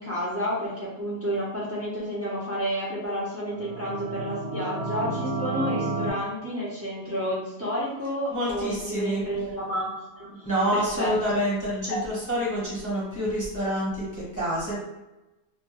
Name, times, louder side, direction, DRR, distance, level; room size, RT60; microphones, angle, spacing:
voice 1, 0.0-9.9 10.1-10.3 10.7-11.4 11.9-12.0, equal, 20° right, -8 dB, 0.4 m, -30 dB
sound 1, 3.5-6.1, right 3 dB, 75° right, 1.0 m, -31 dB
voice 2, 8.3-9.2 10.4-14.8, equal, 15° left, -8 dB, 0.7 m, -27 dB
2.6 x 2.1 x 3.0 m, 1.0 s
omnidirectional pair, 1.5 m